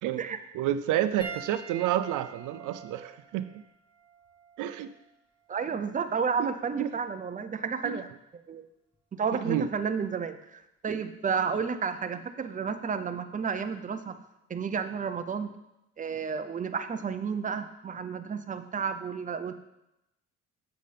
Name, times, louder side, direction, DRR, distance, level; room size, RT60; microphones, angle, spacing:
voice 1, 0.5-3.6 4.6-4.9 6.4-6.5 6.8-6.9 7.8-8.0 9.4-9.7 10.9-11.0, right 11 dB, 85° right, 12 dB, 0.5 m, -29 dB
Piano, 1.2-5.9 6.8-7.0 8.9-9.0, right 5 dB, 15° left, 1.3 m, -46 dB
voice 2, 5.5-8.1 8.5-8.6 9.1-14.2 14.5-15.5 16.0-19.5, right 6 dB, 25° right, 9 dB, 0.6 m, -31 dB
7.9 x 7.4 x 3.4 m, 0.87 s
cardioid pair, 90°, 30 cm